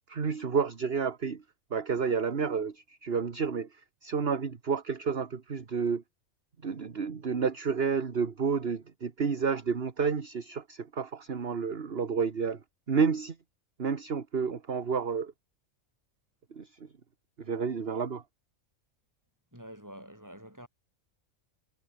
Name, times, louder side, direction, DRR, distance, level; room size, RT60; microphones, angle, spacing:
voice 1, 0.1-1.4 1.7-3.7 4.0-6.0 6.6-12.6 12.9-13.3 13.8-15.3 16.5-16.7 17.4-18.2, right 5 dB, 45° right, 1.7 m, -30 dB
voice 2, 19.5-20.7, equal, 15° right, 6.9 m, -47 dB
omnidirectional pair, 1.4 m